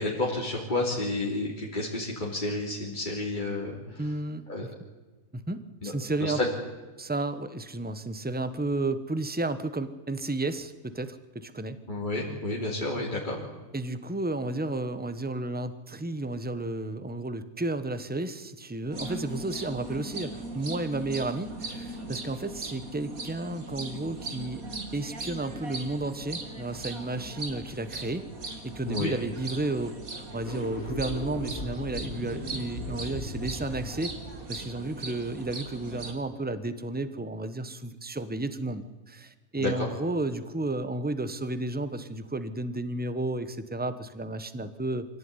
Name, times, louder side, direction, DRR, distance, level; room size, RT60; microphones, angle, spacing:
voice 1, 0.0-4.0 4.5-4.7 5.8-5.9 6.2-6.5 11.9-13.4 28.9-29.2 39.6-39.9, left 2 dB, 35° left, -4 dB, 3.6 m, -30 dB
voice 2, 4.0-4.7 5.3-6.4 7.0-11.8 13.7-24.6 24.9-28.3 28.6-34.1 34.5-45.0, right 2 dB, 5° right, 12 dB, 1.1 m, -32 dB
sound 1, 18.9-36.1, right 2 dB, 85° right, 3.1 m, -39 dB
sound 2, 30.3-35.6, left 1 dB, 80° left, 3.4 m, -38 dB
25.0 x 17.0 x 9.8 m, 1.2 s
omnidirectional pair, 1.5 m